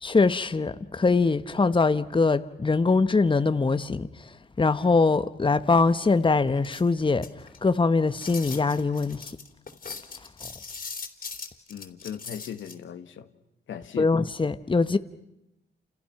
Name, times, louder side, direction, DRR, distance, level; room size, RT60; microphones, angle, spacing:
voice 1, 0.0-4.1 4.6-7.3 7.6-9.3 14.0-15.0, left 4 dB, 25° left, 1.1 m, -22 dB
sound 1, 6.6-7.7 8.2-12.7, left 5 dB, 50° left, 3.3 m, -39 dB
voice 2, 11.7-13.3 13.7-14.1, left 9 dB, 90° left, 1.7 m, -38 dB
29.0 x 29.0 x 5.9 m
cardioid pair, 75°, 19 cm